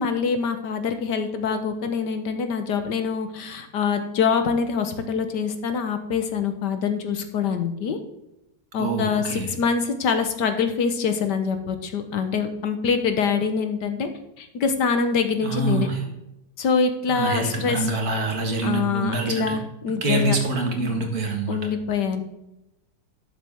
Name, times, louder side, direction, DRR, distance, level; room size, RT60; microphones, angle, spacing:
voice 1, 0.0-8.0 8.7-14.1 14.4-15.9 16.6-17.9 18.6-20.4 21.5-22.2, left 5 dB, 70° left, 8 dB, 1.7 m, -25 dB
voice 2, 8.8-9.5 15.4-16.0 17.1-19.6 20.0-21.6, right 2 dB, 55° right, 2 dB, 2.1 m, -25 dB
12.0 x 7.4 x 3.6 m, 0.91 s
omnidirectional pair, 2.0 m